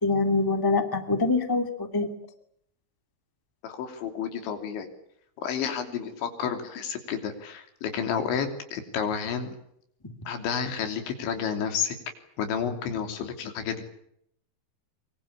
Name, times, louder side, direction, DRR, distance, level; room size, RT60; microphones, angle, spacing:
voice 1, 0.0-2.1, left 3 dB, 20° left, 7 dB, 0.5 m, -24 dB
voice 2, 3.6-4.9 5.4-9.6 10.3-12.0 12.4-13.8, left 7 dB, 75° left, 7 dB, 5.4 m, -31 dB
24.5 x 24.0 x 8.5 m, 0.73 s
omnidirectional pair, 5.4 m